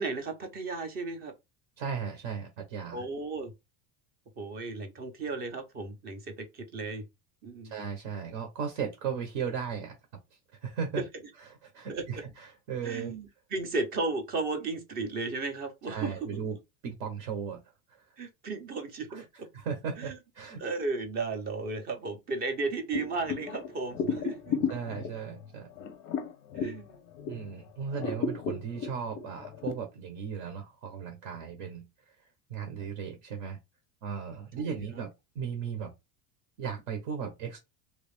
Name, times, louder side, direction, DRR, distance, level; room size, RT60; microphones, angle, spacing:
voice 1, 0.0-1.3 2.9-3.5 4.4-7.1 7.4-7.7 11.0-11.1 11.9-12.2 12.8-16.4 18.2-19.5 20.0-20.2 20.6-24.6 26.5-27.1 34.6-34.8, right 3 dB, 25° right, 0.6 m, -34 dB
voice 2, 1.8-3.0 7.6-9.9 10.5-11.0 11.5-13.1 15.9-16.6 16.8-17.6 17.9-18.0 19.1-19.2 19.5-20.6 24.7-25.7 27.3-32.1 32.5-33.6 34.0-35.9 36.6-37.6, right 6 dB, 65° right, 1.1 m, -36 dB
sound 1, 22.9-27.5 27.9-29.7, left 6 dB, 35° left, 0.5 m, -34 dB
3.2 x 2.4 x 3.3 m
cardioid pair, 175°, 40 cm